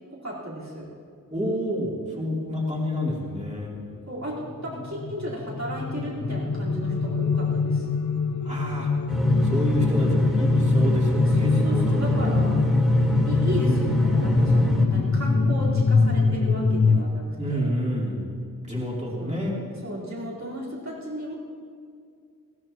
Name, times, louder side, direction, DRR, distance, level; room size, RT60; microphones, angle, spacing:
voice 1, 0.1-0.9 4.1-7.9 11.2-12.7 13.2-17.7 19.2-19.4 19.8-21.4, equal, 50° right, -6 dB, 4.3 m, -34 dB
voice 2, 1.3-3.7 8.4-8.9 9.4-12.4 17.4-18.3 18.6-19.6, equal, 20° right, -5 dB, 3.2 m, -29 dB
sound 1, 4.3-17.0, left 4 dB, 55° left, 1.0 m, -24 dB
sound 2, 9.1-14.9, left 1 dB, ahead, 3.4 m, -23 dB
20.5 x 16.5 x 3.0 m, 2.3 s
wide cardioid pair, 60°, 35 cm